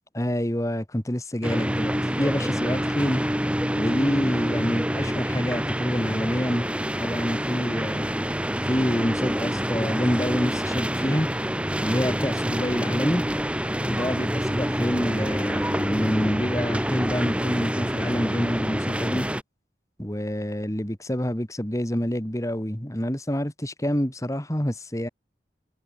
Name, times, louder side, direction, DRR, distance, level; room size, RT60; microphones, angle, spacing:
voice 1, 0.1-3.2 3.7-6.7 7.0-8.1 8.6-11.3 11.8-13.2 13.9-19.3 20.0-25.1, equal, 15° left, 2.4 m, -27 dB
sound 1, 1.4-19.4, equal, 5° right, 7.4 m, -27 dB
head